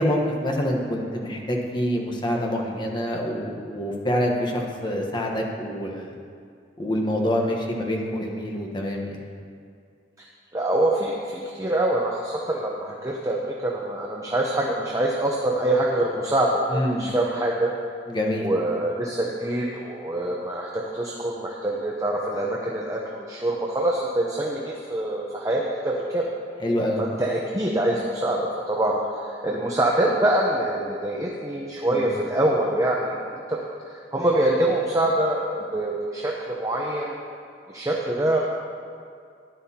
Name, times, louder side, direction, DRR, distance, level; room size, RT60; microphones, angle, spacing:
voice 1, 0.0-6.1 6.8-9.2 16.7-17.1 18.1-18.5 26.6-27.0 31.9-32.0, equal, 25° left, 0 dB, 1.1 m, -26 dB
voice 2, 10.5-17.7 18.3-26.3 27.0-37.1 37.7-38.4, right 1 dB, 20° right, -2 dB, 0.7 m, -25 dB
13.5 x 10.5 x 2.9 m, 2.3 s
head